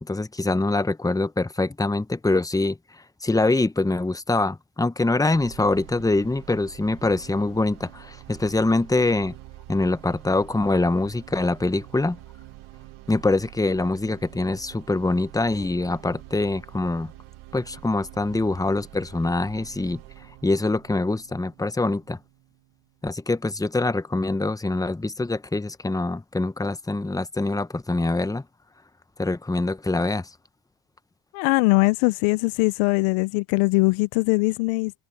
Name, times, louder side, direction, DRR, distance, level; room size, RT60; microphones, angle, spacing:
voice 1, 0.0-2.8 3.2-9.4 9.7-12.2 13.1-17.1 17.5-20.0 20.4-22.2 23.0-28.4 29.2-30.3, left 2 dB, 5° left, 0.9 m, -24 dB
sound 1, 5.3-23.3, right 16 dB, 75° right, 1.9 m, -46 dB
voice 2, 31.3-34.9, left 26 dB, 90° left, 0.6 m, -21 dB
supercardioid pair, 80°, 49 cm